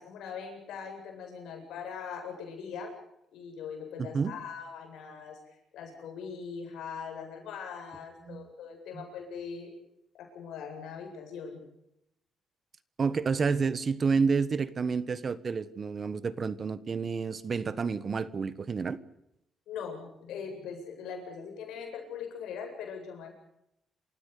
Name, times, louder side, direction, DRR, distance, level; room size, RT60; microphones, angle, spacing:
voice 1, 0.0-3.0 3.3-9.7 10.1-11.6 19.7-23.3, left 6 dB, 85° left, 3 dB, 8.0 m, -41 dB
voice 2, 4.0-4.3 8.3-8.4 8.9-9.0 13.0-19.0, right 5 dB, 40° right, 16 dB, 1.4 m, -29 dB
28.0 x 16.0 x 8.5 m, 0.80 s
cardioid pair, 90°, 0 cm